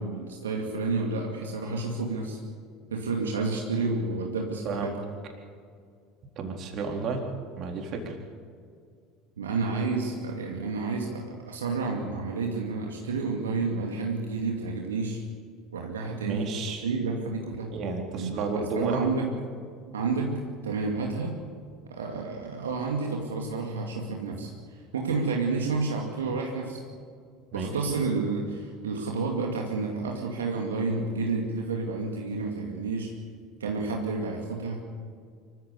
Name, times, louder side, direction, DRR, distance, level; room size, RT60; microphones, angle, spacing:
voice 1, 0.0-2.4 2.9-5.0 9.4-15.2 15.7-16.6 16.8-17.7 18.2-19.3 19.9-21.4 21.9-24.5 24.9-26.8 27.5-33.1 33.6-34.8, right 3 dB, 80° right, 0 dB, 2.3 m, -30 dB
voice 2, 4.6-5.0 6.4-7.3 7.6-8.2 16.2-16.8 17.7-19.1 27.5-27.7, right 4 dB, 50° right, 2 dB, 4.0 m, -32 dB
25.5 x 15.0 x 8.4 m, 2.2 s
hypercardioid pair, 70°, 0 cm